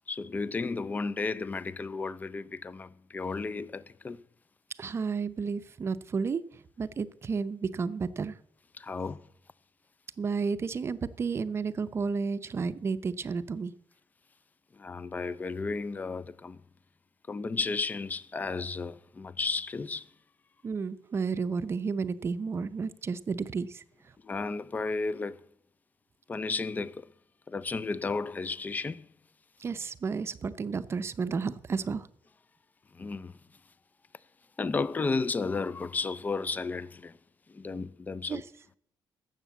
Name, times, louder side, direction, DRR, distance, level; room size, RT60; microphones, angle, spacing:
voice 1, 0.1-4.2 8.8-9.2 14.8-16.6 17.3-20.1 24.2-25.4 26.3-27.1 27.5-29.1 32.9-33.3 34.6-37.2 37.5-38.4, left 4 dB, 20° left, 0.4 m, -33 dB
voice 2, 4.8-8.4 10.2-13.7 20.6-23.8 29.6-32.1 38.3-38.4, right 5 dB, 30° right, 0.6 m, -32 dB
13.0 x 7.4 x 8.2 m
cardioid pair, 150°, 8 cm